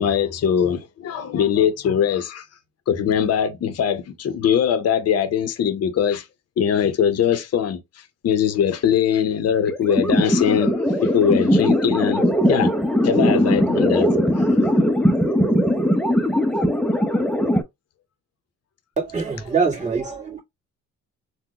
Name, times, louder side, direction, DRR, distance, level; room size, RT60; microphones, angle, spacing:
voice 1, 0.0-2.5 2.9-6.3 6.6-7.8 8.2-12.7 13.0-14.8, left 8 dB, 55° left, 0.7 m, -21 dB
sound 1, 9.7-17.6, equal, 5° left, 0.5 m, -19 dB
voice 2, 19.0-20.4, right 5 dB, 25° right, 1.8 m, -24 dB
3.7 x 2.2 x 2.8 m
cardioid pair, 90°, 30 cm